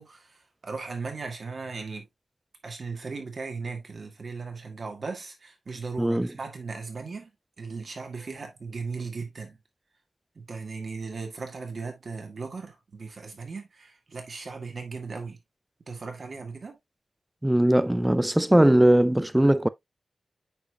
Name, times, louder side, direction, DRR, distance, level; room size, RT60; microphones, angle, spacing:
voice 1, 0.0-2.1 2.6-7.3 7.6-9.6 10.4-15.4 15.9-16.8, right 4 dB, 50° right, 2.0 m, -37 dB
voice 2, 17.4-19.7, right 1 dB, 10° right, 0.4 m, -20 dB
8.7 x 5.2 x 2.3 m
wide cardioid pair, 155°, 0 cm